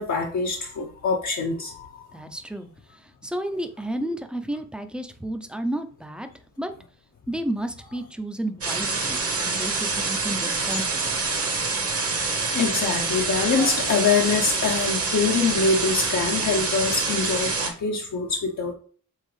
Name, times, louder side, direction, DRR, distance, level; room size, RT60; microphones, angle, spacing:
voice 1, 0.0-2.1 12.5-18.7, left 4 dB, 65° left, 0 dB, 0.9 m, -24 dB
voice 2, 2.1-6.3 6.6-6.7 7.3-11.3, right 1 dB, 5° right, 7 dB, 0.5 m, -32 dB
sound 1, 8.6-17.7, right 4 dB, 45° right, 1.1 m, -26 dB
7.4 x 4.0 x 3.2 m, 0.43 s
wide cardioid pair, 170°, 31 cm